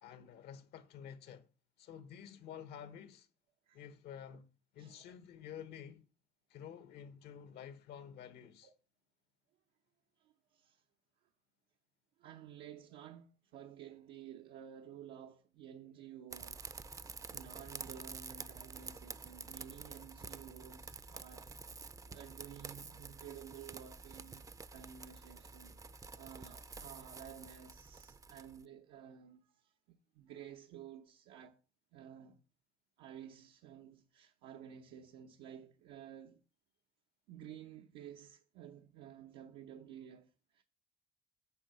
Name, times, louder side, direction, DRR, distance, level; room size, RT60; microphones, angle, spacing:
voice 1, 0.0-1.5 1.8-3.3 3.7-4.5 4.7-6.0 6.5-8.7, left 8 dB, 75° left, 1.3 m, -50 dB
voice 2, 4.8-5.1 8.6-8.7 10.2-10.8 12.2-21.5 22.1-31.6 31.9-32.4 33.0-36.4 37.3-40.6, right 9 dB, 90° right, 0.8 m, -53 dB
sound 1, 16.3-28.6, right 4 dB, 20° right, 0.5 m, -49 dB
8.7 x 4.7 x 7.6 m
cardioid pair, 110°, 17 cm